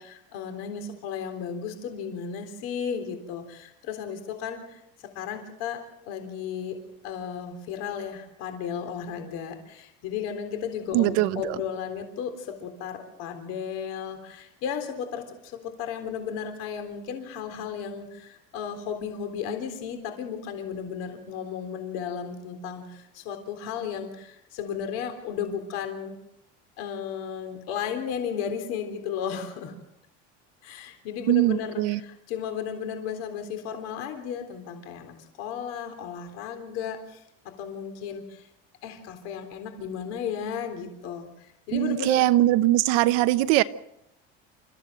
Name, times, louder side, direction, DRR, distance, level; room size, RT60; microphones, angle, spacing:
voice 1, 0.0-4.8 5.1-6.8 7.0-26.1 26.8-29.8 30.6-38.5 38.8-42.6, left 7 dB, 55° left, 3.7 m, -34 dB
voice 2, 10.9-11.6 31.3-32.0 41.7-43.6, right 16 dB, 60° right, 0.9 m, -21 dB
28.5 x 14.5 x 7.8 m
cardioid pair, 170°, 30 cm